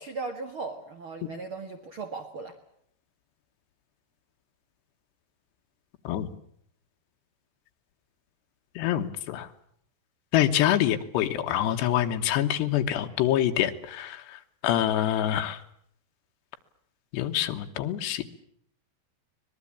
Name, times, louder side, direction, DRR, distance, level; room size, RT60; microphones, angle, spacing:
voice 1, 0.0-2.6 10.8-11.0, right 4 dB, 50° right, 7 dB, 1.7 m, -37 dB
voice 2, 8.8-9.5 10.3-14.2 14.6-15.6 17.1-18.3, left 11 dB, 75° left, 5 dB, 3.4 m, -25 dB
24.0 x 20.5 x 8.6 m, 0.68 s
omnidirectional pair, 5.0 m